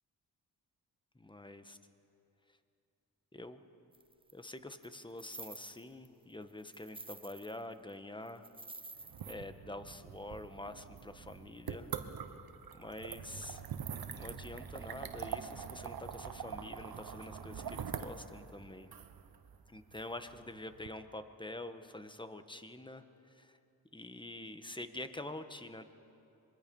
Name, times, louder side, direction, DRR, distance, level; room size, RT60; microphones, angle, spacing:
voice 1, 1.1-1.8 3.3-3.6 4.3-8.5 9.3-11.9 12.7-13.6 14.1-18.9 19.7-23.6 23.9-25.8, left 1 dB, 10° left, 9 dB, 1.4 m, -46 dB
sound 1, 3.9-4.3 4.8-6.1 6.4-7.6 7.9-8.0 8.2-9.3, right 3 dB, 15° right, 0.7 m, -50 dB
sound 2, 9.0-20.9, right 7 dB, 65° right, 1.2 m, -44 dB
26.0 x 22.5 x 5.5 m, 2.7 s
cardioid pair, 60°, 38 cm